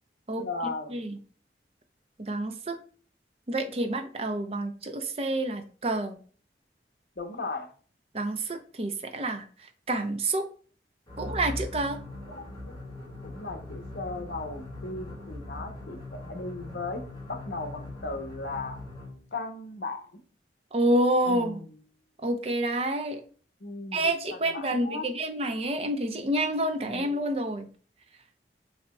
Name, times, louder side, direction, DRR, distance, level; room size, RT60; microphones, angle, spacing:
voice 1, 0.4-1.0 7.2-7.7 12.3-12.8 13.2-17.0 17.3-18.8 19.3-20.2 21.3-21.7 23.6-24.0 24.3-25.1 26.8-27.1, left 3 dB, 70° left, 5 dB, 0.8 m, -37 dB
voice 2, 2.2-2.8 3.5-6.2 8.1-10.5 11.2-12.0 20.7-21.6 22.2-23.2 23.9-27.7, right 1 dB, 35° right, 6 dB, 0.6 m, -28 dB
sound 1, 11.1-19.3, left 2 dB, 25° left, 1.2 m, -41 dB
6.6 x 2.8 x 2.2 m, 0.42 s
head